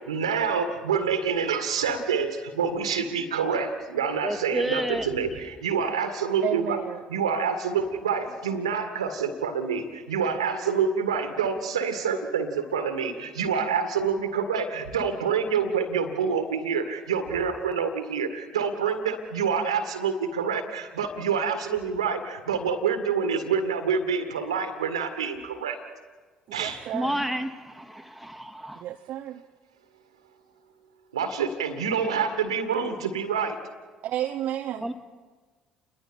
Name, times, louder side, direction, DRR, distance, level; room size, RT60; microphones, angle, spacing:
voice 1, 0.1-6.8 7.1-25.8 26.5-26.8 31.1-33.6, right 6 dB, 80° right, 7 dB, 1.9 m, -27 dB
voice 2, 4.2-5.1 26.9-28.8 34.8-34.9, equal, ahead, 6 dB, 2.0 m, -30 dB
voice 3, 6.4-7.0 26.5-27.2 28.8-29.4 34.0-34.9, right 12 dB, 55° right, 5 dB, 0.8 m, -31 dB
29.5 x 21.5 x 4.5 m, 1.4 s
figure-of-eight pair, 55°, 3 cm